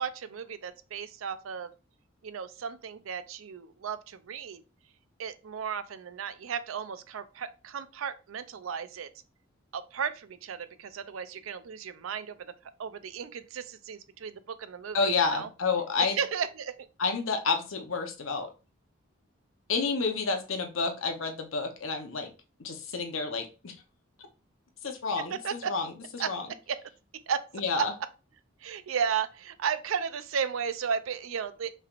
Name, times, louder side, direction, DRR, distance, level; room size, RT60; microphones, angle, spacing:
voice 1, 0.0-1.7 2.2-4.6 5.2-9.1 9.7-12.5 12.8-15.5 16.0-16.9 25.3-25.7 26.2-26.3 26.7-26.8 27.1-27.5 27.7-27.9 28.6-31.7, right 7 dB, 90° right, 0.5 m, -34 dB
voice 2, 14.9-16.2 17.0-18.5 19.7-22.3 22.6-23.7 24.8-26.5 27.5-27.9, left 4 dB, 85° left, 0.9 m, -30 dB
5.5 x 3.4 x 2.5 m
head